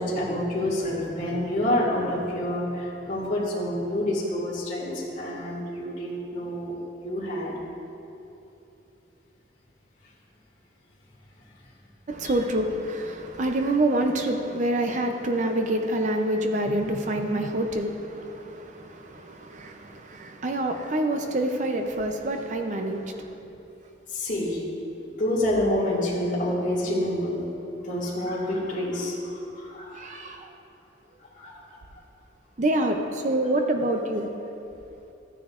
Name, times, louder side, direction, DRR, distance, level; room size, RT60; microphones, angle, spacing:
voice 1, 0.0-6.7 7.0-7.6 12.2-12.3 24.1-24.6 25.2-27.5 27.8-30.1 31.4-31.8, left 1 dB, 40° left, -7 dB, 2.1 m, -28 dB
voice 2, 12.1-23.3 29.9-30.5 32.6-34.3, right 1 dB, 40° right, 4 dB, 0.5 m, -27 dB
14.0 x 9.5 x 2.5 m, 2.8 s
head